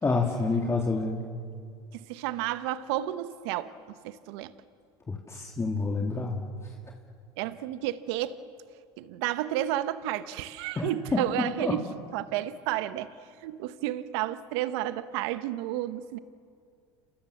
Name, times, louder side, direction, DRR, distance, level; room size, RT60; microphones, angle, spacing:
voice 1, 0.0-1.2 5.1-6.4 10.8-11.7, left 3 dB, 20° left, 0 dB, 2.9 m, -28 dB
voice 2, 1.9-3.7 4.0-4.5 7.4-8.4 9.0-11.9 12.1-13.1 13.4-16.2, right 13 dB, 75° right, 12 dB, 1.2 m, -31 dB
28.0 x 27.0 x 7.3 m, 2.3 s
hypercardioid pair, 90°, 14 cm